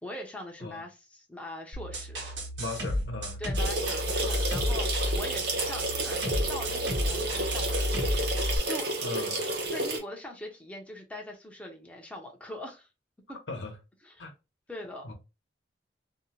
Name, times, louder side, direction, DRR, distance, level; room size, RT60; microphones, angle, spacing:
voice 1, 0.0-2.2 3.4-8.9 9.7-12.9 13.3-13.4 14.0-14.2 14.7-15.1, left 1 dB, 10° left, 0.5 m, -42 dB
sound 1, 1.7-8.6, left 1 dB, 85° right, 1.1 m, -31 dB
voice 2, 2.6-3.4 9.0-9.4 13.5-13.8 14.2-14.3 15.0-15.1, left 2 dB, 75° left, 0.8 m, -37 dB
sound 2, 3.5-10.0, right 2 dB, 60° right, 0.8 m, -31 dB
2.6 x 2.1 x 2.8 m
head